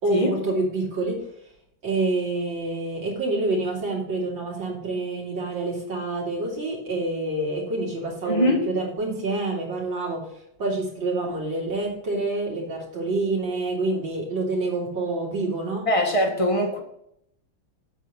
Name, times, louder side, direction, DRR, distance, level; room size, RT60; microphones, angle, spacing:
voice 1, 0.0-1.2 1.8-10.2 10.6-15.9, right 2 dB, 70° right, -3 dB, 3.5 m, -27 dB
voice 2, 8.3-8.7 15.9-16.8, equal, 20° left, 1 dB, 1.2 m, -22 dB
8.2 x 4.6 x 7.1 m, 0.75 s
omnidirectional pair, 2.2 m